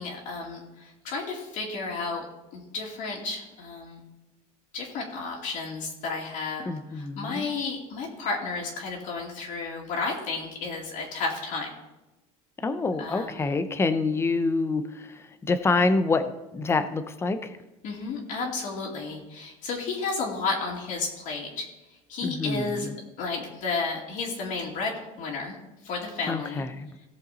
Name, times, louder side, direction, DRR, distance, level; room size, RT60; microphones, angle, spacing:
voice 1, 0.0-2.2 2.5-4.0 4.7-11.7 13.0-13.5 17.8-21.7 22.1-22.9 23.2-25.6 25.8-26.6, left 4 dB, 55° left, -2 dB, 2.5 m, -32 dB
voice 2, 6.7-7.5 12.6-14.8 15.1-17.5 22.2-22.8 26.3-26.9, left 3 dB, 15° left, 10 dB, 0.7 m, -26 dB
17.5 x 6.6 x 4.2 m, 1.0 s
cardioid pair, 145°, 17 cm